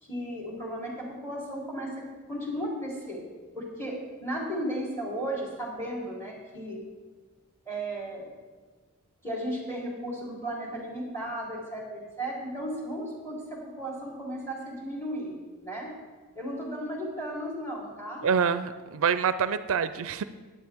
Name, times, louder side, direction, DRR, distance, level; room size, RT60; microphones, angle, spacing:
voice 1, 0.0-1.9 2.3-3.3 3.5-6.8 7.7-8.3 9.2-15.3 15.6-15.9 16.4-18.2, right 1 dB, 10° left, -4 dB, 3.7 m, -35 dB
voice 2, 18.2-20.2, right 6 dB, 65° right, 13 dB, 0.4 m, -26 dB
15.5 x 10.0 x 3.6 m, 1.3 s
head